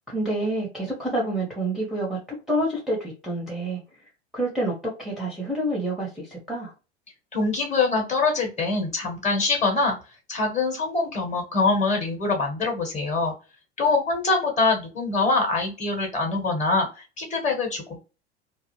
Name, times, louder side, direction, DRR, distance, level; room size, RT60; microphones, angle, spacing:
voice 1, 0.1-2.2 2.5-3.8 4.3-6.7, right 1 dB, ahead, -3 dB, 0.7 m, -28 dB
voice 2, 7.3-9.9 10.3-13.3 13.8-18.0, left 3 dB, 20° left, 2 dB, 1.0 m, -24 dB
2.4 x 2.0 x 3.0 m, 0.31 s
figure-of-eight pair, 80°, 34 cm